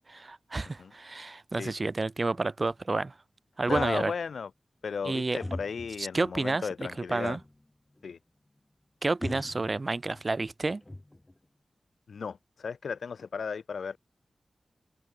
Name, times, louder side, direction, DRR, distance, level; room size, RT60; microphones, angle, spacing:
voice 1, 0.1-3.1 3.6-4.1 5.0-5.4 6.1-7.4 9.0-10.8, right 3 dB, 35° right, 0.5 m, -30 dB
voice 2, 3.7-4.5 4.8-7.4 8.0-8.2 12.1-14.0, left 5 dB, 90° left, 0.5 m, -35 dB
sound 1, 3.7-4.3 5.4-6.0 7.2-7.7 8.0-8.1 9.2-10.2 10.6-11.4, left 1 dB, 15° left, 0.9 m, -40 dB
open air
wide cardioid pair, 130°, 0 cm